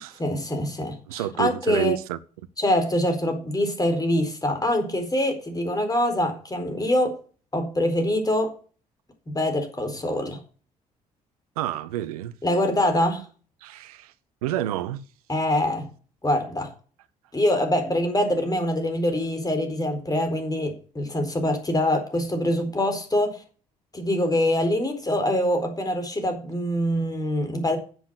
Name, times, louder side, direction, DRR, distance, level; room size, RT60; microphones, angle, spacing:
voice 1, 0.2-2.0 2.6-7.2 7.5-8.5 9.3-10.4 12.4-13.2 15.3-15.9 16.2-16.7 17.3-23.4 23.9-27.8, left 1 dB, 20° left, 4.4 m, -24 dB
voice 2, 1.1-2.2 11.6-12.3 13.6-14.1 14.4-15.0, right 13 dB, 75° right, 0.7 m, -29 dB
11.0 x 7.4 x 6.7 m
figure-of-eight pair, 45°, 19 cm